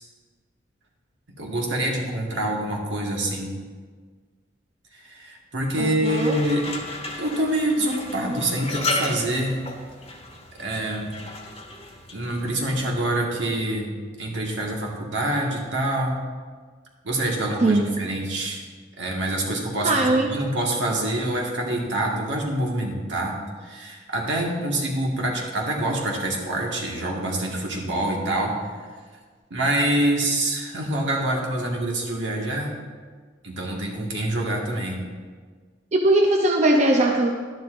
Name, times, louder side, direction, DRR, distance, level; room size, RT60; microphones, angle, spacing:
voice 1, 1.4-3.6 4.9-6.6 7.2-9.6 10.6-11.1 12.1-13.9 14.2-16.2 17.0-18.6 19.0-23.3 23.6-28.5 29.5-32.7 33.4-35.0, right 1 dB, 70° right, -1 dB, 1.7 m, -26 dB
voice 2, 5.8-6.4 17.6-17.9 19.8-20.3 35.9-37.3, right 1 dB, 40° right, 1 dB, 0.6 m, -20 dB
sound 1, 6.0-13.0, left 2 dB, 30° left, 1.3 m, -34 dB
12.0 x 10.5 x 2.6 m, 1.6 s
head